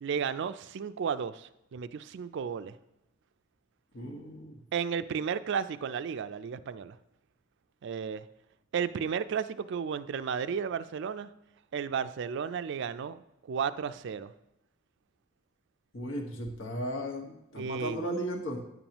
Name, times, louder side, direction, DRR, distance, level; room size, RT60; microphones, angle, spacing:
voice 1, 0.0-2.8 4.7-7.0 7.8-8.3 8.7-11.3 11.7-14.3 17.6-18.0, right 7 dB, 60° right, 13 dB, 0.4 m, -33 dB
voice 2, 3.9-4.6 15.9-18.6, equal, 70° left, 1 dB, 1.3 m, -36 dB
9.5 x 7.1 x 3.0 m, 0.87 s
head